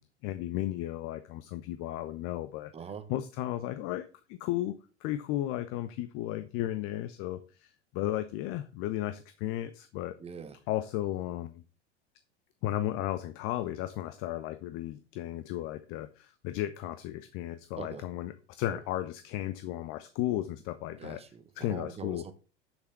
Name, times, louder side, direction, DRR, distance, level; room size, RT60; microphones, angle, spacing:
voice 1, 0.2-2.7 3.1-4.8 5.0-10.2 10.7-11.6 12.6-21.2 21.6-22.3, left 14 dB, 40° left, 0.9 m, -34 dB
voice 2, 2.7-3.1 10.2-10.6 17.8-18.1 18.7-18.8 21.0-22.3, right 6 dB, 15° right, 1.2 m, -43 dB
7.4 x 6.9 x 6.7 m
figure-of-eight pair, 90°, 35 cm